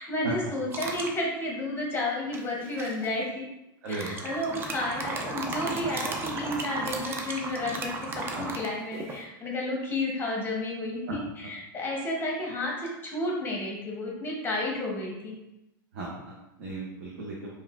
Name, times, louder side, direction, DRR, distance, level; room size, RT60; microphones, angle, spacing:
voice 1, 0.0-3.4 3.9-15.4, left 1 dB, 20° left, -2 dB, 0.8 m, -32 dB
sound 1, 0.7-1.2 2.3-3.1 3.9-9.2, right 3 dB, 20° right, 0.3 m, -35 dB
voice 2, 3.8-4.2 8.3-8.5 15.9-17.5, right 3 dB, 60° right, -4 dB, 0.7 m, -37 dB
3.0 x 2.4 x 2.3 m, 0.91 s
hypercardioid pair, 120°, 11 cm